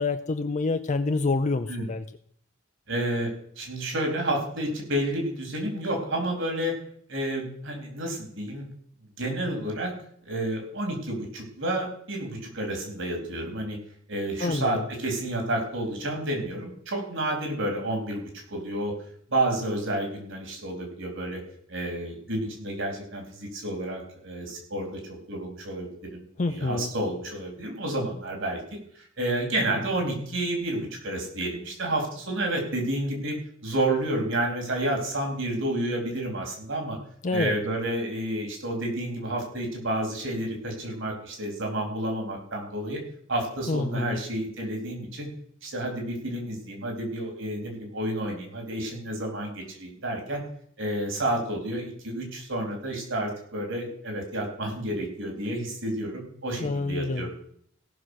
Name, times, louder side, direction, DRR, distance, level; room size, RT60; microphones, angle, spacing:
voice 1, 0.0-2.0 14.4-14.8 26.4-26.9 37.2-37.6 43.7-44.2 56.6-57.3, left 3 dB, 35° left, 9 dB, 0.5 m, -27 dB
voice 2, 2.9-6.7 7.1-8.7 9.2-9.9 10.2-13.8 14.1-18.9 19.3-21.4 21.7-28.6 29.0-33.4 33.6-37.0 37.3-43.0 43.3-45.3 45.6-50.4 50.8-57.3, right 1 dB, 65° right, 2 dB, 3.9 m, -30 dB
17.0 x 6.2 x 6.4 m, 0.63 s
head